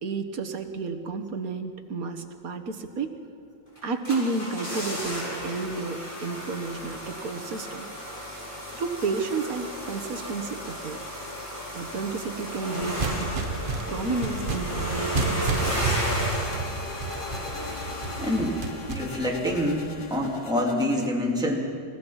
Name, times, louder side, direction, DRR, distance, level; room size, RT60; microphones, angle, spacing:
voice 1, 0.0-3.1 3.8-7.9 8.7-11.0 11.7-13.3 13.9-16.0, right 4 dB, 50° right, 7 dB, 1.6 m, -31 dB
sound 1, 3.8-19.3 19.5-19.6, equal, 25° left, 5.9 m, -34 dB
sound 2, 12.4-21.1, left 5 dB, 40° left, 0.7 m, -41 dB
sound 3, 12.8-20.2, right 4 dB, 35° right, 1.0 m, -31 dB
voice 2, 18.2-21.6, left 1 dB, ahead, -2 dB, 2.8 m, -26 dB
28.5 x 16.0 x 5.9 m, 2.2 s
omnidirectional pair, 2.2 m